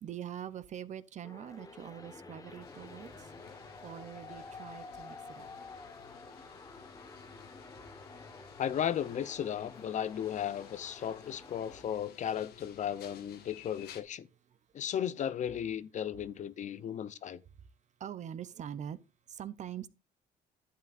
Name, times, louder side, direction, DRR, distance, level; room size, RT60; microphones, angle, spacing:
voice 1, 0.0-5.5 18.0-19.0 19.3-19.9, right 9 dB, 45° right, 0.6 m, -44 dB
sound 1, 1.2-11.8, left 3 dB, 20° left, 1.3 m, -50 dB
sound 2, 2.6-14.0, left 8 dB, 70° left, 1.4 m, -56 dB
voice 2, 8.6-14.3 14.7-17.4, left 9 dB, 45° left, 0.6 m, -35 dB
11.0 x 8.7 x 2.5 m
cardioid pair, 110°, 17 cm